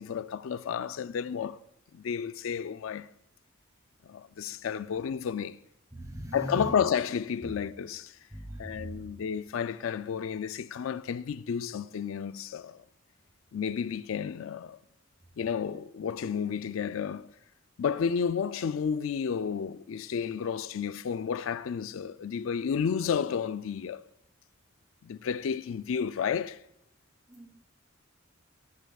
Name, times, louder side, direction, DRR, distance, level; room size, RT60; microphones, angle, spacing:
voice 1, 0.0-1.6 1.9-3.1 4.1-5.6 6.3-8.2 8.6-12.8 13.5-14.8 15.4-17.3 17.8-24.0 25.0-26.6, left 7 dB, 85° left, 0.4 m, -31 dB
voice 2, 5.9-6.7 7.4-7.5 8.3-9.1 15.3-15.4 27.3-27.5, right 1 dB, 15° right, 2.6 m, -40 dB
17.0 x 12.5 x 2.4 m
head